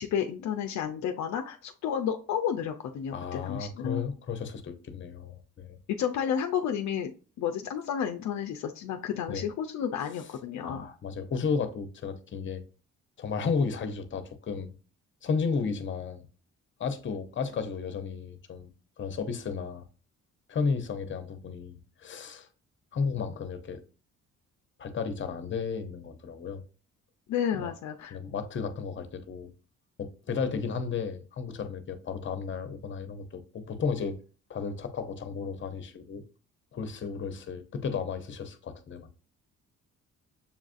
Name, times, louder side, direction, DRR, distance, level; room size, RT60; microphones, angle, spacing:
voice 1, 0.0-4.0 6.0-7.1 7.4-10.9 27.3-28.2, left 8 dB, 70° left, 0.5 m, -31 dB
voice 2, 3.1-5.8 9.3-9.5 10.7-12.6 13.2-14.7 15.2-16.3 16.8-19.8 20.5-22.5 22.9-23.8 24.8-26.6 27.6-27.7 28.1-29.5 30.0-34.2 34.5-36.2 36.7-39.1, left 5 dB, 40° left, 0.7 m, -33 dB
7.0 x 2.4 x 2.5 m
cardioid pair, 90°, 30 cm